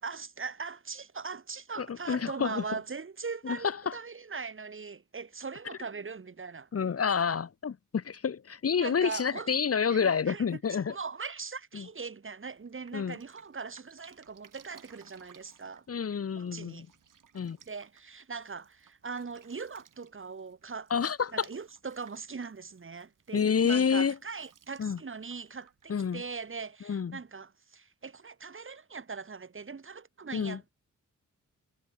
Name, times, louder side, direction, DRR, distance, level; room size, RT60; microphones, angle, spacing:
voice 1, 0.0-6.7 8.8-9.5 9.9-10.6 10.9-15.8 16.3-16.9 17.7-20.9 21.3-30.7, right 5 dB, 40° right, 4.5 m, -40 dB
voice 2, 1.8-2.6 3.4-4.0 6.7-11.0 11.7-11.9 12.9-13.2 15.9-16.9 17.3-17.6 20.9-21.5 23.3-24.2 24.8-25.0 25.9-26.2 26.8-27.2 30.3-30.6, left 6 dB, 50° left, 1.3 m, -29 dB
Drip, 12.5-26.5, right 8 dB, 80° right, 6.1 m, -61 dB
wide cardioid pair, 130°, 31 cm